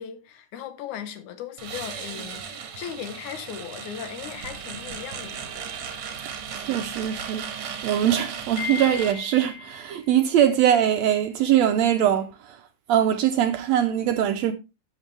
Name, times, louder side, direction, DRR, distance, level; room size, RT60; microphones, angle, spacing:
voice 1, 0.0-5.5, left 9 dB, 75° left, 2.5 m, -37 dB
sound 1, 1.6-9.1, right 7 dB, 55° right, 1.6 m, -36 dB
voice 2, 6.5-7.5 7.8-12.6 12.9-14.5, right 10 dB, 75° right, 1.6 m, -22 dB
Wind chime, 8.6-10.0, left 8 dB, 45° left, 1.7 m, -35 dB
11.5 x 7.3 x 3.3 m
omnidirectional pair, 3.6 m